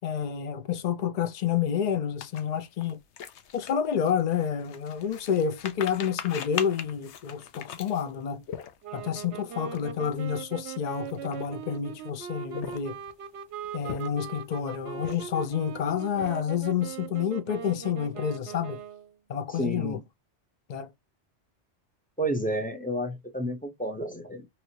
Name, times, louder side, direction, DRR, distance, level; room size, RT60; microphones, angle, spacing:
voice 1, 0.0-3.0 3.5-8.4 8.9-13.0 13.7-18.8 19.3-20.0 20.7-20.9, left 8 dB, 50° left, 0.6 m, -29 dB
sound 1, 2.2-9.1 9.6-9.8 10.1-10.3 10.9-11.8 12.4-13.1 13.6-14.4 14.9-15.5 15.9-16.7, left 8 dB, 75° left, 0.9 m, -40 dB
sound 2, 8.8-19.2, right 9 dB, 70° right, 0.8 m, -40 dB
voice 2, 19.5-20.0 22.2-24.5, equal, 10° left, 0.7 m, -31 dB
3.1 x 2.7 x 2.8 m
omnidirectional pair, 1.2 m